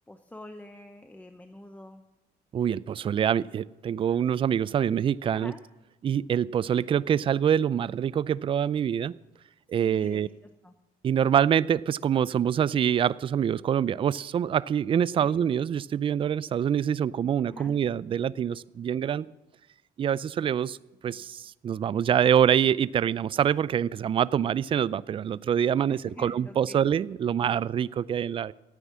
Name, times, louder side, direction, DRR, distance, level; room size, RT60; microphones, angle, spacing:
voice 1, 0.1-2.0 5.3-5.6 9.8-10.3 10.6-10.7 15.2-15.3 17.5-17.7 25.9-26.8, left 1 dB, 10° left, 7 dB, 0.8 m, -45 dB
voice 2, 2.5-5.5 6.0-9.1 9.7-10.3 11.0-19.3 20.0-20.8 21.0-28.5, right 9 dB, 30° right, 19 dB, 0.4 m, -25 dB
13.5 x 9.1 x 7.4 m, 1.0 s
cardioid pair, 110°, 17 cm